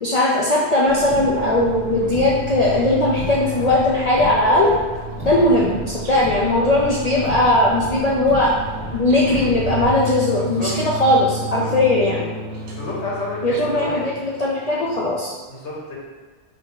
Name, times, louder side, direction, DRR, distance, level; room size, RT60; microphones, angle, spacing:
voice 1, 0.0-4.7 5.2-8.6 8.9-12.3 13.4-15.4, left 1 dB, 50° left, -4 dB, 0.5 m, -18 dB
Car, 0.8-9.9, left 1 dB, 5° right, 1.4 m, -34 dB
sound 1, 0.9-15.1, right 2 dB, 50° right, 0.6 m, -32 dB
voice 2, 10.4-10.7 11.6-11.7 12.7-14.1 15.5-16.0, left 2 dB, 75° left, -5 dB, 1.3 m, -30 dB
4.3 x 2.8 x 3.8 m, 1.4 s
omnidirectional pair, 1.2 m